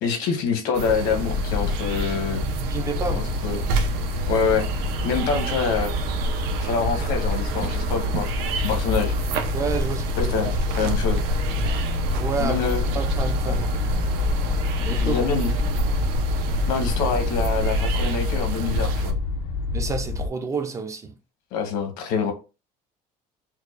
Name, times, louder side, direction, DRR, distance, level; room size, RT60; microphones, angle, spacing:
voice 1, 0.0-2.4 3.1-3.6 4.3-4.7 5.0-5.9 6.6-8.3 8.6-9.1 10.2-11.2 12.4-12.9 13.5-13.6 15.0-15.6 16.7-19.1 21.5-22.3, left 6 dB, 80° left, 1.1 m, -26 dB
sound 1, 0.7-19.1, right 4 dB, 90° right, 0.6 m, -28 dB
sound 2, 1.1-20.3, left 5 dB, 60° left, 0.4 m, -27 dB
voice 2, 2.7-3.3 5.3-5.5 9.5-10.6 12.2-12.6 12.9-14.2 14.8-15.2 19.7-21.1, right 5 dB, 20° right, 0.3 m, -30 dB
4.6 x 2.2 x 2.4 m
cardioid pair, 175°, 16 cm